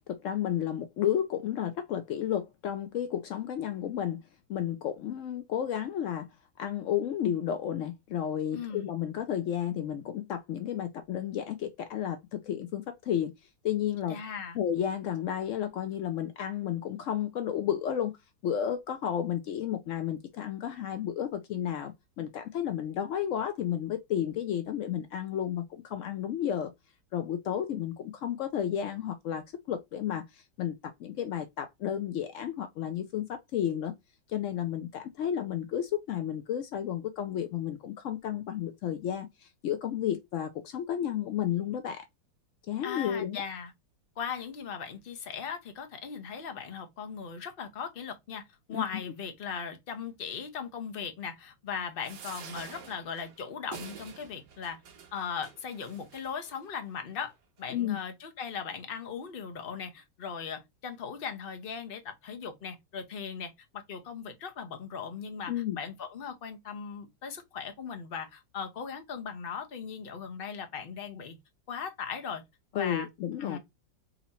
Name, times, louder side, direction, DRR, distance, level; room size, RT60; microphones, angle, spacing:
voice 1, 0.1-4.2 4.5-6.3 6.6-13.3 13.6-14.2 14.5-18.1 18.4-26.7 27.1-30.7 31.0-33.9 34.3-42.0 42.7-43.4 48.7-48.8 57.7-58.0 65.5-65.8 72.7-73.6, left 10 dB, 80° left, 0.6 m, -32 dB
voice 2, 8.5-8.9 14.1-14.6 42.8-43.7 44.2-48.4 48.7-54.8 55.1-57.3 57.6-71.4 71.7-72.4 72.7-73.1 73.4-73.6, left 6 dB, 45° left, 0.8 m, -38 dB
sound 1, 52.0-56.6 57.2-57.3 57.6-57.7, right 7 dB, 70° right, 1.5 m, -48 dB
4.0 x 2.8 x 4.1 m
omnidirectional pair, 1.9 m